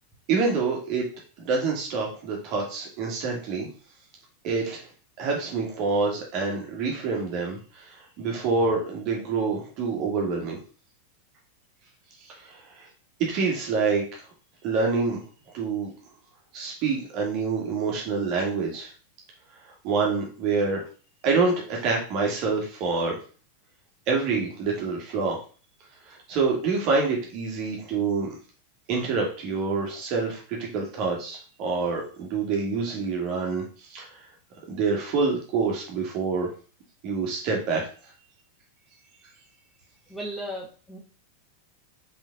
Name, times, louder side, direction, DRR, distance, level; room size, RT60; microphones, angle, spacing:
voice 1, 0.3-1.0 1.4-3.7 4.4-4.8 5.2-7.6 8.2-10.6 13.3-14.0 14.6-15.2 15.5-15.9 16.5-18.9 19.8-20.8 21.2-23.2 24.1-25.4 26.3-28.3 28.9-33.6 33.9-34.1 34.7-36.5 37.0-37.9, right 4 dB, 40° right, -1 dB, 2.3 m, -26 dB
voice 2, 40.1-41.0, equal, 5° left, -2 dB, 2.2 m, -35 dB
5.7 x 5.0 x 3.9 m, 0.38 s
figure-of-eight pair, 90°, 0 cm